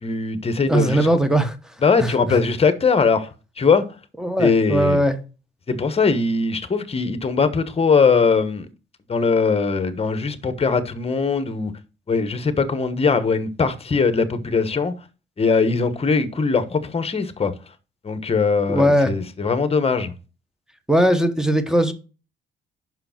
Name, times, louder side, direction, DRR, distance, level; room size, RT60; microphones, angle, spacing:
voice 1, 0.0-1.2 1.8-3.3 3.6-3.8 4.4-5.0 5.7-8.7 9.1-11.7 12.1-14.9 15.4-17.5 18.0-20.1, left 4 dB, 30° left, 1.1 m, -20 dB
voice 2, 0.7-1.6 2.0-2.1 4.2-5.2 18.7-19.1 20.9-21.9, right 1 dB, 5° right, 1.1 m, -19 dB
5.9 x 4.9 x 5.8 m
cardioid pair, 90°, 20 cm